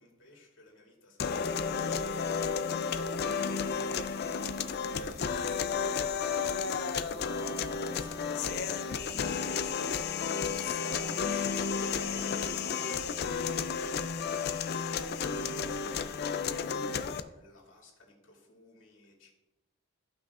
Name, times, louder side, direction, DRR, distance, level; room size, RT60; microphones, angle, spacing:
voice 1, 0.0-1.8 2.0-13.3 13.9-15.6 15.9-19.3, left 2 dB, 70° left, -3 dB, 2.6 m, -54 dB
sound 1, 1.2-17.2, left 6 dB, 50° left, 0.4 m, -32 dB
14.5 x 5.6 x 2.5 m, 1.0 s
head